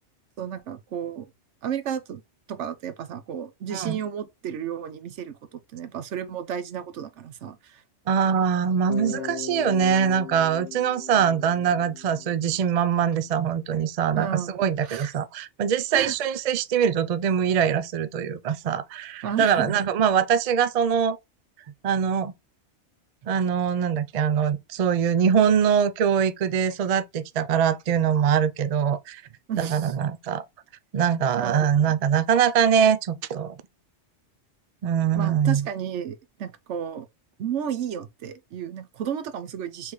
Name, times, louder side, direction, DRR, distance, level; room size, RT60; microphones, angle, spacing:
voice 1, 0.4-1.3 1.6-2.2 2.5-7.8 9.1-9.3 14.1-15.1 15.9-16.1 19.2-19.8 29.5-29.9 31.4-32.0 35.1-37.1 37.4-39.9, right 8 dB, 75° right, 1.0 m, -32 dB
voice 2, 8.1-14.3 14.6-21.2 21.8-22.3 23.2-29.2 29.6-30.4 30.9-33.6 34.8-35.6, right 7 dB, 60° right, 0.4 m, -23 dB
Bass guitar, 8.9-12.8, left 9 dB, 55° left, 1.0 m, -38 dB
4.4 x 3.5 x 3.1 m
omnidirectional pair, 1.2 m